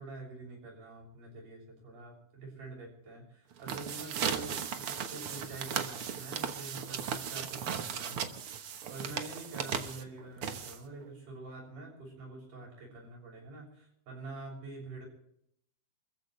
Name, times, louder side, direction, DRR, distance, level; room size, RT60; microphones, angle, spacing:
voice 1, 0.0-15.1, right 3 dB, 85° right, -1 dB, 8.7 m, -46 dB
sound 1, 3.5-11.1, right 7 dB, 55° right, 1.8 m, -37 dB
28.0 x 14.5 x 3.3 m, 0.74 s
omnidirectional pair, 3.5 m